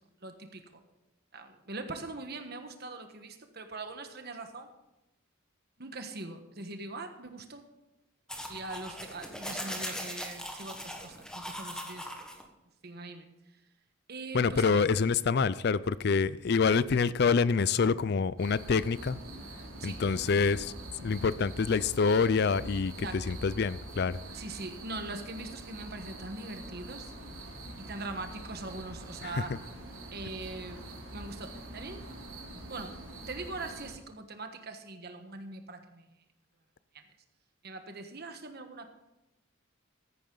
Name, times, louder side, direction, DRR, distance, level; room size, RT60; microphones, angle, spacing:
voice 1, 0.2-0.8 1.3-4.7 5.8-7.6 8.5-12.1 12.8-13.3 14.1-14.8 19.8-20.0 22.9-23.4 24.3-27.1 27.8-29.6 30.1-30.8 31.1-32.1 32.7-33.0 33.3-36.1 36.9-37.0 37.6-38.9, right 3 dB, 50° right, 7 dB, 1.3 m, -42 dB
sound 1, 8.3-12.4, equal, 5° left, 1.4 m, -40 dB
voice 2, 14.3-19.2 19.8-24.2 29.2-29.3, left 5 dB, 50° left, 17 dB, 0.4 m, -27 dB
sound 2, 18.4-33.9, right 1 dB, 85° right, 3.5 m, -44 dB
14.0 x 10.5 x 3.9 m, 0.97 s
head